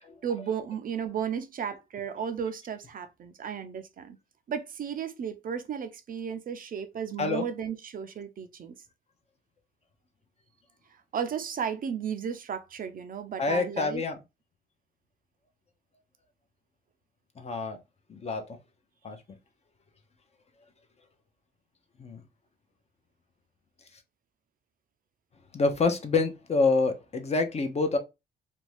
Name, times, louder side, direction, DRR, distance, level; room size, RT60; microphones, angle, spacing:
voice 1, 0.2-4.2 4.5-8.8 11.1-14.0, right 7 dB, 45° right, 0.4 m, -34 dB
voice 2, 13.4-14.2 17.4-17.8 18.1-18.4 19.0-19.2 22.0-22.2 25.5-28.0, left 3 dB, 30° left, 0.6 m, -27 dB
2.6 x 2.2 x 3.1 m
cardioid pair, 90°, 20 cm